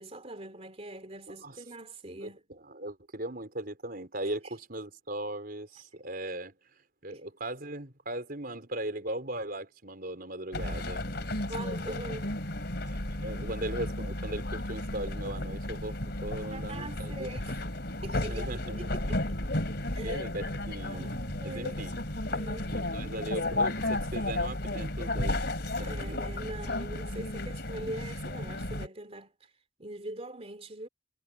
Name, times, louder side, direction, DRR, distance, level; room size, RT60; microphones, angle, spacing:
voice 1, 0.0-2.4 7.1-7.2 11.5-12.3 16.5-17.6 18.0-19.2 19.9-20.3 20.9-21.8 22.3-22.7 25.7-29.3 29.8-30.9, right 1 dB, 35° right, 2.9 m, -42 dB
voice 2, 2.2-6.5 7.0-11.3 12.8-17.3 18.3-18.8 20.0-21.1 21.4-22.0 22.7-26.2, right 1 dB, 50° right, 4.6 m, -38 dB
sound 1, 10.5-28.9, left 1 dB, 60° left, 4.2 m, -33 dB
head